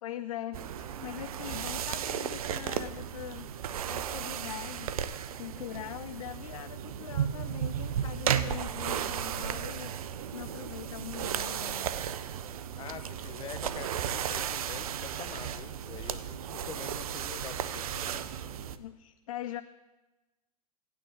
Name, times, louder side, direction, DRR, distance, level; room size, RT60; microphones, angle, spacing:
voice 1, 0.0-3.5 3.8-11.9 18.8-19.6, left 12 dB, 65° left, 12 dB, 0.5 m, -42 dB
sound 1, 0.5-18.8, right 9 dB, 65° right, 0.7 m, -35 dB
voice 2, 12.8-18.3, left 8 dB, 25° left, 10 dB, 0.9 m, -45 dB
17.0 x 9.1 x 3.6 m, 1.1 s
hypercardioid pair, 110°, 19 cm